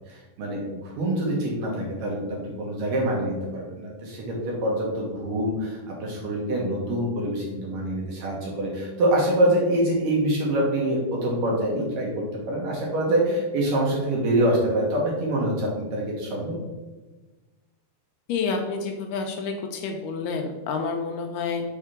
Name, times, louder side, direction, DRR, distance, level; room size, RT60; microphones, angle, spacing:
voice 1, 0.1-16.6, right 1 dB, 65° right, -3 dB, 2.5 m, -25 dB
voice 2, 18.3-21.6, left 5 dB, 80° left, 3 dB, 2.4 m, -29 dB
6.5 x 3.5 x 5.8 m, 1.2 s
omnidirectional pair, 4.8 m